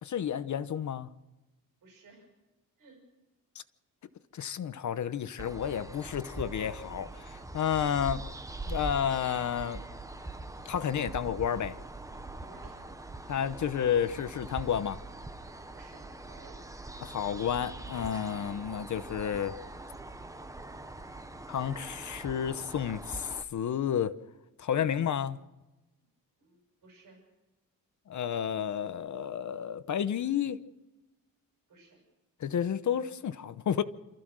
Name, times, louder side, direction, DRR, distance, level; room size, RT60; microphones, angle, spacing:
voice 1, 0.0-1.1 4.3-8.2 8.7-9.8 10.6-11.8 13.3-15.0 17.0-19.5 21.5-24.1 24.6-25.4 28.1-30.6 32.4-33.8, left 8 dB, 55° left, 0.9 m, -31 dB
voice 2, 1.8-2.3 2.8-3.0 7.7-8.2 12.4-12.9 15.7-16.6 18.3-18.6 26.4-27.2 31.7-32.0, right 3 dB, 65° right, 6.3 m, -57 dB
sound 1, 5.4-23.4, right 2 dB, 10° right, 0.8 m, -43 dB
28.5 x 14.5 x 6.3 m
wide cardioid pair, 165°, 35 cm